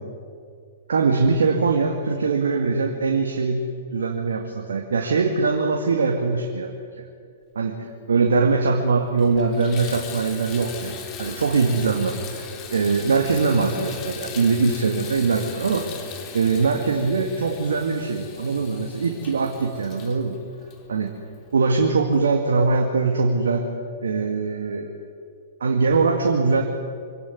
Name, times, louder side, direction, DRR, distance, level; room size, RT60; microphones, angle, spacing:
voice 1, 0.9-6.7 7.6-7.8 8.1-15.9 16.3-20.4 20.9-21.1 21.5-23.7 24.0-24.9 25.6-26.6, right 4 dB, 80° right, 2 dB, 2.2 m, -22 dB
Water tap faucet / Bathtub (filling or washing), 8.5-8.6 9.1-21.5 22.1-22.2 22.7-22.8, left 5 dB, 35° left, 3.5 m, -39 dB
24.5 x 17.5 x 9.4 m, 2.3 s
hypercardioid pair, 115°, 0 cm